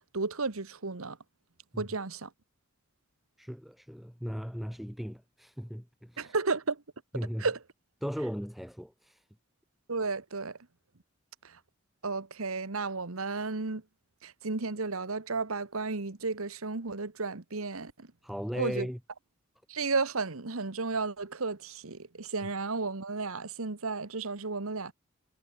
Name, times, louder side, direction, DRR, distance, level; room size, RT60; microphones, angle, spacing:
voice 1, 0.1-1.2 1.8-2.3 6.2-6.8 7.4-7.6 9.9-10.6 11.4-11.6 12.0-13.8 14.2-18.1 18.5-18.9 19.7-24.9, right 4 dB, 80° right, 1.4 m, -33 dB
voice 2, 3.4-6.3 7.1-7.5 8.0-9.2 18.2-19.0, equal, ahead, 0.7 m, -37 dB
head